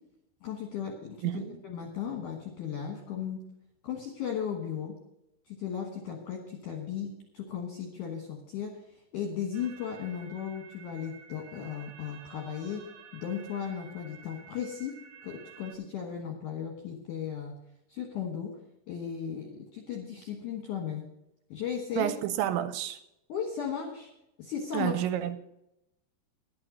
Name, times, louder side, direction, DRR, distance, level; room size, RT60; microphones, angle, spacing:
voice 1, 0.4-1.3 1.6-3.4 3.8-4.9 5.5-8.7 9.1-12.8 13.1-15.0 15.2-17.5 17.9-18.5 18.9-21.1 21.5-22.1 23.3-24.1 24.4-25.0, left 8 dB, 70° left, 2.0 m, -36 dB
voice 2, 1.2-1.6 22.0-23.0 24.7-25.4, right 11 dB, 85° right, 2.9 m, -30 dB
sound 1, 9.5-15.7, right 7 dB, 65° right, 2.2 m, -52 dB
11.0 x 8.7 x 6.2 m
omnidirectional pair, 5.4 m